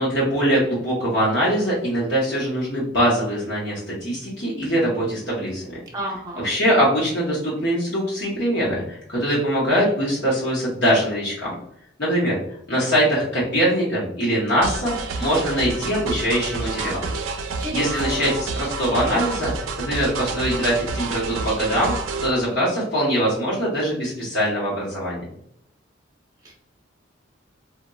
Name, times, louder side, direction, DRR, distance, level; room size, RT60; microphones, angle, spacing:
voice 1, 0.0-5.8 6.4-11.5 12.0-12.4 12.7-17.1 17.7-19.5 19.8-21.9 22.2-25.2, equal, 60° left, -6 dB, 0.8 m, -22 dB
voice 2, 5.9-6.5 17.6-17.9 26.4-26.5, right 1 dB, 20° right, -3 dB, 0.7 m, -31 dB
sound 1, 14.6-22.3, right 3 dB, 85° right, 0.4 m, -29 dB
3.9 x 2.1 x 2.2 m, 0.72 s
head